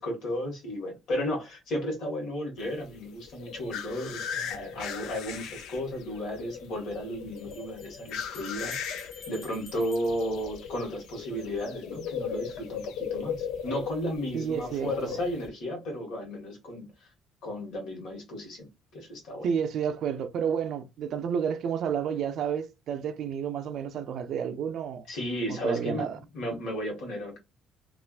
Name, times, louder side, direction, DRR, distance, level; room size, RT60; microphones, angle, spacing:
voice 1, 0.0-16.9 17.4-19.5 25.1-26.1 26.3-27.4, equal, 60° left, 1.5 m, -34 dB
sound 1, 2.6-15.5, left 7 dB, 80° left, 0.5 m, -38 dB
sound 2, 5.7-5.8 7.4-11.3, left 3 dB, 35° left, 0.8 m, -51 dB
voice 2, 14.3-15.2 19.4-25.0 25.5-26.2, right 7 dB, 55° right, 0.4 m, -30 dB
3.3 x 2.4 x 2.4 m
cardioid pair, 160°, 0 cm